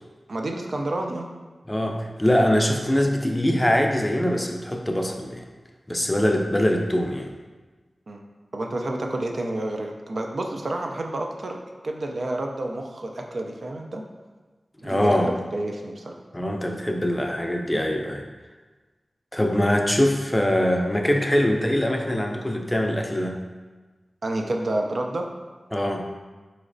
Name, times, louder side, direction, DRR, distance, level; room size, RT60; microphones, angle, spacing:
voice 1, 0.3-1.3 8.1-8.2 8.5-11.6 11.8-14.0 14.8-16.1 24.2-25.3, right 1 dB, 65° right, 2 dB, 0.4 m, -29 dB
voice 2, 1.7-5.4 5.9-7.3 14.8-15.3 16.3-18.2 19.3-23.4 25.7-26.0, equal, 20° left, 3 dB, 0.4 m, -23 dB
3.9 x 3.1 x 2.5 m, 1.3 s
cardioid pair, 45°, 0 cm